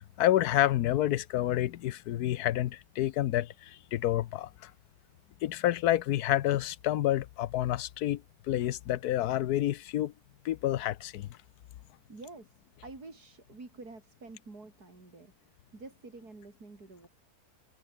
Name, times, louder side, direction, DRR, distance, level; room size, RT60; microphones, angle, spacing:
voice 1, 0.2-4.7 5.4-8.2 8.5-10.1 10.4-11.3, left 13 dB, 80° left, 1.2 m, -29 dB
voice 2, 12.1-17.1, right 3 dB, 80° right, 4.9 m, -49 dB
omnidirectional pair, 1.6 m